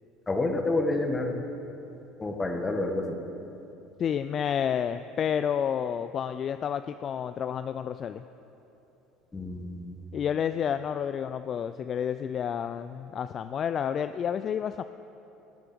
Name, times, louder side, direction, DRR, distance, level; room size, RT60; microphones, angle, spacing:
voice 1, 0.3-1.4 2.2-3.2 9.3-10.0, left 2 dB, 20° left, 4 dB, 1.6 m, -29 dB
voice 2, 4.0-8.2 10.1-14.8, left 8 dB, 45° left, 11 dB, 0.3 m, -30 dB
17.0 x 8.3 x 5.3 m, 3.0 s
hypercardioid pair, 75°, 0 cm